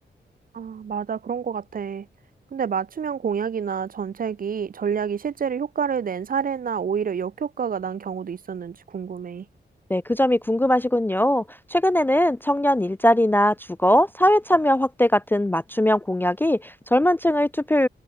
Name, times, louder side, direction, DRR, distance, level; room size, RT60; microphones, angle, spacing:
voice 1, 0.5-2.1 2.5-9.4, right 7 dB, 50° right, 0.6 m, -28 dB
voice 2, 9.9-11.4 11.7-17.9, left 1 dB, 10° left, 0.3 m, -20 dB
wide cardioid pair, 105°, 18 cm